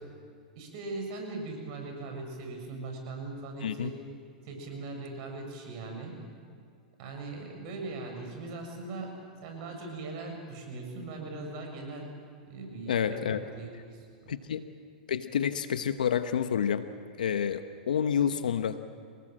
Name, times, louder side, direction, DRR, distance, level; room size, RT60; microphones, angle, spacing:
voice 1, 0.6-4.0 4.4-6.1 7.0-9.1 9.4-12.1 12.5-13.9, right 3 dB, 55° right, 2 dB, 7.0 m, -40 dB
voice 2, 3.6-3.9 12.9-13.4 14.3-14.7 15.1-16.8 17.2-18.8, left 8 dB, 85° left, 10 dB, 1.0 m, -29 dB
29.0 x 18.5 x 7.6 m, 2.2 s
hypercardioid pair, 110°, 4 cm